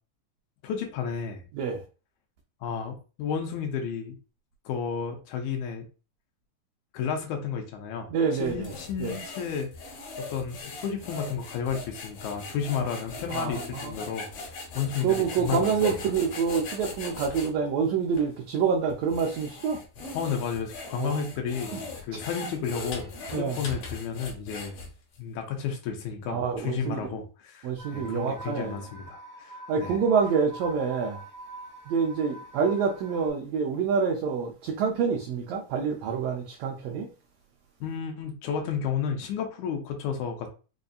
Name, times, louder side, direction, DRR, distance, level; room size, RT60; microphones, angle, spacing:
voice 1, 0.6-1.4 2.6-4.2 4.7-5.8 6.9-8.1 8.4-9.7 10.3-15.9 20.1-24.8 25.2-29.9 37.8-40.5, left 7 dB, 85° left, 2.1 m, -32 dB
voice 2, 1.5-1.8 8.1-8.7 9.0-9.2 13.3-14.0 15.0-19.8 21.0-21.2 21.7-21.8 22.1-22.2 23.3-23.6 26.3-27.2 27.6-28.9 29.7-31.2 31.9-37.1, right 6 dB, 75° right, 1.6 m, -27 dB
sound 1, 8.4-17.5 18.1-18.3 18.9-25.2, left 3 dB, 65° left, 1.9 m, -39 dB
sound 2, 27.8-33.3, right 1 dB, 20° right, 1.2 m, -44 dB
5.1 x 2.6 x 2.4 m
omnidirectional pair, 3.4 m